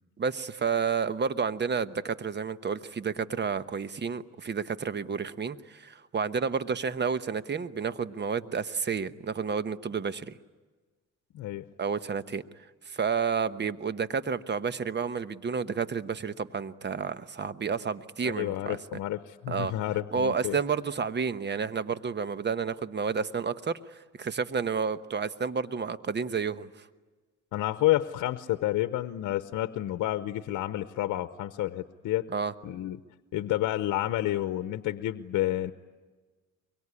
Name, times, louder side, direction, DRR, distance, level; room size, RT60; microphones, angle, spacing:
voice 1, 0.2-10.4 11.8-12.4 12.9-18.8 19.5-19.7 20.1-26.9 32.3-32.5, right 6 dB, 35° right, 13 dB, 1.1 m, -30 dB
voice 2, 11.3-11.7 18.2-20.6 27.5-32.3 32.6-33.0 33.3-35.7, left 15 dB, 80° left, 11 dB, 0.9 m, -30 dB
24.0 x 23.0 x 9.8 m, 1.3 s
cardioid pair, 90°, 30 cm